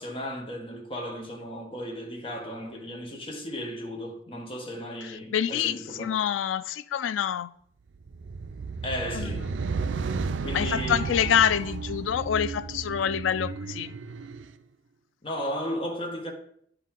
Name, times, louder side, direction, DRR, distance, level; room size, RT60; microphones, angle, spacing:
voice 1, 0.0-6.1 8.8-9.6 10.4-11.3 15.2-16.3, equal, 30° left, 1.3 m, -35 dB
voice 2, 5.3-7.5 9.1-9.3 10.5-13.9, left 8 dB, 85° left, 0.4 m, -26 dB
sound 1, 8.0-14.5, right 4 dB, 70° right, 0.4 m, -33 dB
10.0 x 4.6 x 3.7 m
head